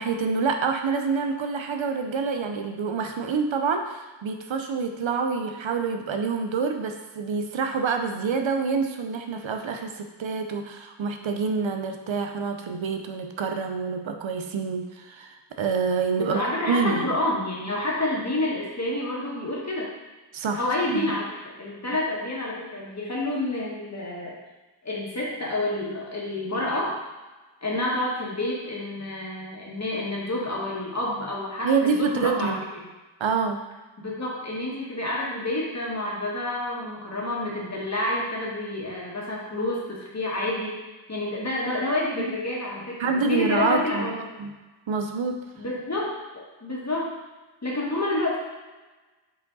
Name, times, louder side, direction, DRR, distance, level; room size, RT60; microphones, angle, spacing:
voice 1, 0.0-17.1 20.3-20.6 20.9-21.1 31.6-32.6 33.2-33.6 42.2-42.4 43.0-44.1 44.4-44.5 44.9-45.3, right 5 dB, 85° right, 5 dB, 0.7 m, -27 dB
voice 2, 16.1-19.9 20.6-21.3 21.6-24.3 24.8-27.0 27.6-32.6 34.0-40.8 41.1-44.2 45.5-46.1 46.6-47.1 47.6-48.4, left 1 dB, 35° left, -4 dB, 1.7 m, -28 dB
5.2 x 4.9 x 4.0 m, 1.2 s
wide cardioid pair, 75°, 46 cm